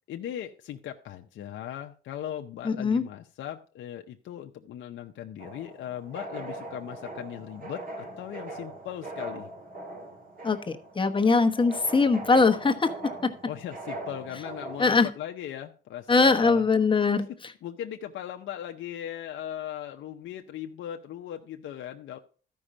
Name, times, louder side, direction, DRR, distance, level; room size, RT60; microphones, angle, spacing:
voice 1, 0.1-9.5 13.5-16.6 17.6-22.2, left 11 dB, 75° left, 3 dB, 0.7 m, -38 dB
voice 2, 2.6-3.0 10.4-12.9 13.2-13.3 14.8-15.1 16.1-17.5, left 4 dB, 25° left, 6 dB, 1.1 m, -22 dB
sound 1, 5.4-15.0, right 2 dB, 45° right, 2.6 m, -41 dB
13.0 x 5.4 x 5.0 m, 0.40 s
cardioid pair, 90°, 20 cm